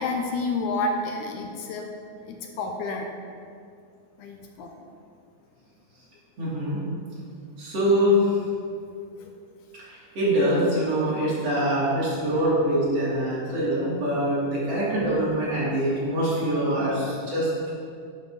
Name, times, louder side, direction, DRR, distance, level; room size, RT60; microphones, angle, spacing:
voice 1, 0.0-1.9 2.2-3.1 4.2-4.7 9.2-9.3 11.6-11.7 14.2-14.3 14.7-14.8 16.9-17.0, left 3 dB, 80° left, 2 dB, 2.1 m, -30 dB
voice 2, 6.4-6.8 7.6-8.2 9.9-17.7, right 1 dB, 50° right, -9 dB, 3.8 m, -24 dB
11.0 x 6.1 x 4.8 m, 2.4 s
omnidirectional pair, 3.6 m